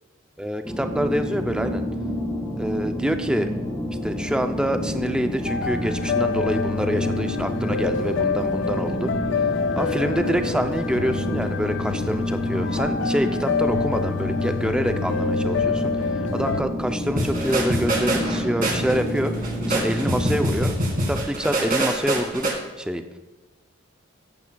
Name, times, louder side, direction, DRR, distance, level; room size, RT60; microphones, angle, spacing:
voice 1, 0.4-1.8 2.6-3.5 4.0-9.1 9.8-15.9 16.3-19.3 19.7-20.7 21.1-23.2, equal, 5° right, 7 dB, 0.4 m, -26 dB
sound 1, 0.6-20.5, equal, 10° left, 1.9 m, -28 dB
sound 2, 5.5-16.6, left 5 dB, 65° left, 0.3 m, -27 dB
sound 3, 17.2-22.5, right 1 dB, 45° right, 1.8 m, -25 dB
13.5 x 8.3 x 2.3 m, 1.1 s
head